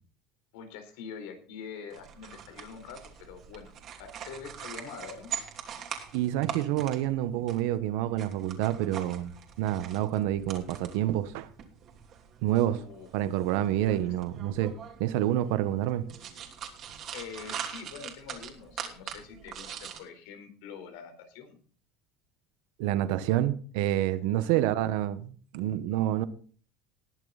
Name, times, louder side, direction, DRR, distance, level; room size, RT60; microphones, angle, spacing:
voice 1, 0.5-3.7 4.0-5.3 12.7-13.1 13.8-14.1 17.1-21.6 24.4-24.7, left 6 dB, 80° left, 3.9 m, -45 dB
sound 1, 1.9-20.0, right 8 dB, 45° right, 3.0 m, -43 dB
voice 2, 6.1-11.5 12.4-12.8 13.1-14.7 15.0-16.1 22.8-26.3, right 13 dB, 75° right, 1.2 m, -28 dB
20.0 x 7.7 x 4.0 m
supercardioid pair, 125°, 0 cm